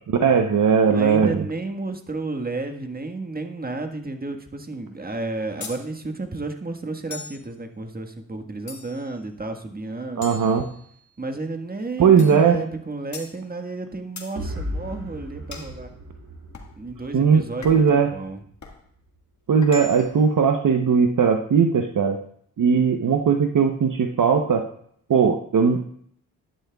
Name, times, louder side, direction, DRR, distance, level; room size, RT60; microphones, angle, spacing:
voice 1, 0.1-1.4 10.2-10.6 12.0-12.6 17.1-18.1 19.5-22.2 22.6-24.6 25.1-25.8, right 6 dB, 60° right, 4 dB, 1.0 m, -18 dB
voice 2, 0.9-10.3 11.2-15.9 16.8-18.4, right 3 dB, 25° right, 5 dB, 1.6 m, -32 dB
sound 1, 5.6-5.9 7.1-7.5 8.7-9.1 10.2-11.1 12.2-12.5 13.1-13.4 14.2-14.4 15.5-15.8 16.5-16.8 17.6-18.0 18.6-18.8 19.6-20.2, left 3 dB, 50° left, 1.9 m, -39 dB
sound 2, 14.3-18.2, equal, 80° right, 3.0 m, -36 dB
11.5 x 11.0 x 2.4 m, 0.63 s
cardioid pair, 50°, 36 cm